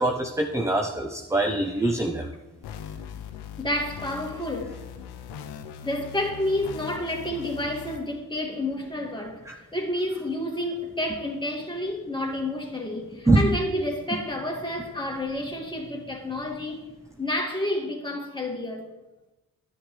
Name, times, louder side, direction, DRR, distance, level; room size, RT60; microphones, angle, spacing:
voice 1, 0.0-2.3 9.5-9.6 13.3-13.5, right 2 dB, 5° right, 0.9 m, -23 dB
sound 1, 2.6-8.0, left 8 dB, 85° left, 0.6 m, -40 dB
voice 2, 3.6-4.8 5.8-9.4 9.7-16.9 17.2-18.9, left 1 dB, 10° left, 2.1 m, -30 dB
10.0 x 8.7 x 3.3 m
supercardioid pair, 45°, 39 cm